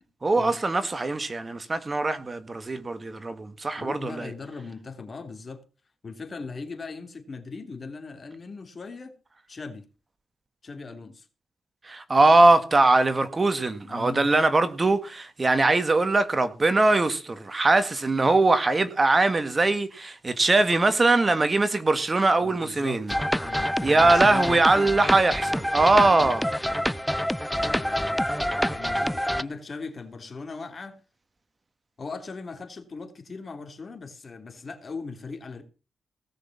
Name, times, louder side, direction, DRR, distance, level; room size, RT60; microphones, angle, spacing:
voice 1, 0.2-4.3 11.8-23.1 23.8-26.5, right 2 dB, 35° right, 1.8 m, -21 dB
voice 2, 3.8-5.6 6.0-9.1 9.5-9.8 10.6-11.2 13.8-14.3 22.4-23.2 23.5-24.9 25.9-26.2 27.6-31.0 32.0-35.6, left 4 dB, 45° left, 3.1 m, -39 dB
sound 1, 23.1-29.4, equal, 5° left, 0.7 m, -27 dB
17.5 x 6.5 x 7.3 m
cardioid pair, 70°, 0 cm